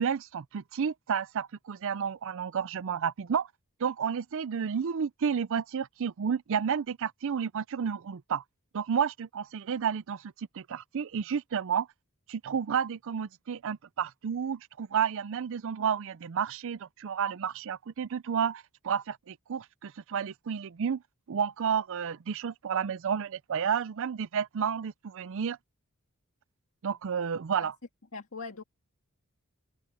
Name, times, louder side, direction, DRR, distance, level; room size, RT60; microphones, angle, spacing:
voice 1, 0.0-3.5 3.8-8.4 8.7-11.9 12.3-21.0 21.3-25.6 26.8-27.8, right 7 dB, 65° right, 0.5 m, -31 dB
voice 2, 28.1-28.6, left 4 dB, 65° left, 2.1 m, -40 dB
head